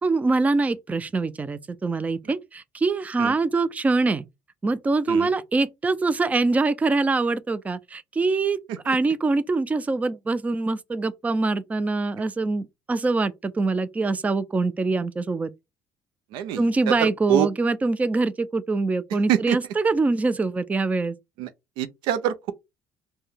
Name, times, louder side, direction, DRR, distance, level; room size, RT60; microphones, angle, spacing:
voice 1, 0.0-4.3 4.6-15.5 16.6-21.2, right 3 dB, 20° right, 0.4 m, -24 dB
voice 2, 16.3-17.5 19.3-19.6 21.4-21.5 21.8-22.5, right 10 dB, 85° right, 0.5 m, -25 dB
4.4 x 2.2 x 3.4 m
cardioid pair, 90°, 8 cm